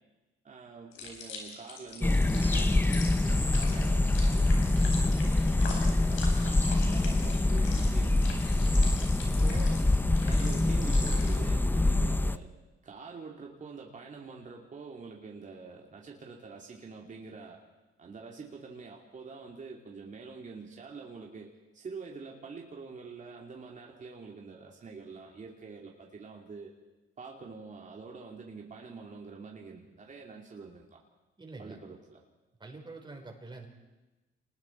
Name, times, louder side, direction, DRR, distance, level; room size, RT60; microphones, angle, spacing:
voice 1, 0.4-8.3 9.2-9.9 10.3-12.5 12.8-17.6 18.0-26.7 27.2-31.0 31.6-32.2, right 4 dB, 40° right, -1 dB, 2.9 m, -46 dB
sound 1, 0.9-11.4, left 4 dB, 90° left, 4.9 m, -43 dB
sound 2, 2.0-12.4, left 2 dB, 10° left, 0.6 m, -25 dB
voice 2, 31.4-31.8 32.6-33.7, right 3 dB, 25° right, 2 dB, 4.6 m, -46 dB
27.5 x 20.5 x 4.7 m, 1.1 s
cardioid pair, 90°, 20 cm